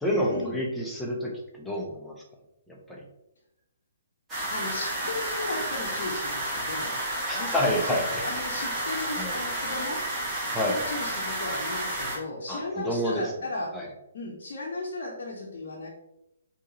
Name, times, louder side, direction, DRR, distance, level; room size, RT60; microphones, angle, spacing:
voice 1, 0.0-2.2 2.7-3.0 7.3-8.2 9.2-9.4 10.5-10.8 12.5-13.3 13.7-13.9, left 1 dB, 5° left, -3 dB, 0.8 m, -29 dB
sound 1, 4.3-12.2, right 1 dB, 15° right, 1.5 m, -31 dB
voice 2, 4.5-7.0 7.3-10.1 10.6-13.8 14.1-15.9, left 2 dB, 50° left, -4 dB, 0.8 m, -36 dB
4.7 x 2.9 x 2.9 m, 0.87 s
figure-of-eight pair, 130°, 0 cm